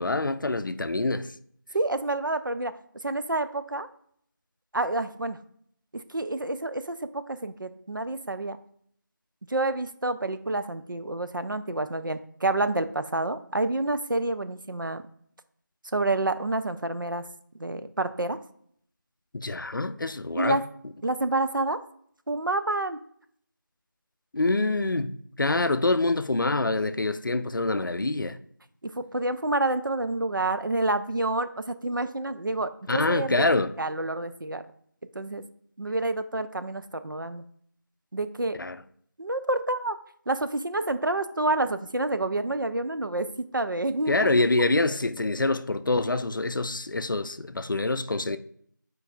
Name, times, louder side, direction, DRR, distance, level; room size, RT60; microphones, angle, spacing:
voice 1, 0.0-1.3 19.3-20.6 24.3-28.4 32.9-33.7 38.6-38.8 44.1-48.4, left 2 dB, 75° left, 0.4 m, -26 dB
voice 2, 1.7-2.7 3.0-3.9 4.7-5.4 5.9-8.6 9.5-15.0 15.9-17.2 17.6-18.4 20.3-20.6 21.0-21.8 22.3-23.0 29.0-33.5 33.8-34.6 35.1-35.4 35.8-37.4 38.1-38.6 39.2-40.0 40.3-43.3 43.5-44.3, right 2 dB, 75° right, 0.5 m, -28 dB
8.2 x 4.7 x 2.5 m
figure-of-eight pair, 180°, 11 cm